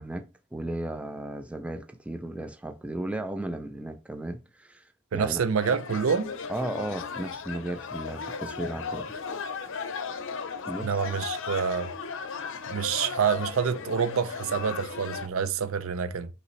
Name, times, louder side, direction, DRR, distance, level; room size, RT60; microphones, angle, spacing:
voice 1, 0.0-4.8 5.1-5.4 6.5-9.1 10.7-10.9, right 1 dB, 5° right, 0.3 m, -35 dB
voice 2, 5.1-6.3 10.8-11.9 12.7-16.3, right 6 dB, 70° right, 0.5 m, -27 dB
sound 1, 5.6-15.3, left 5 dB, 60° left, 0.6 m, -36 dB
5.3 x 3.0 x 3.1 m
head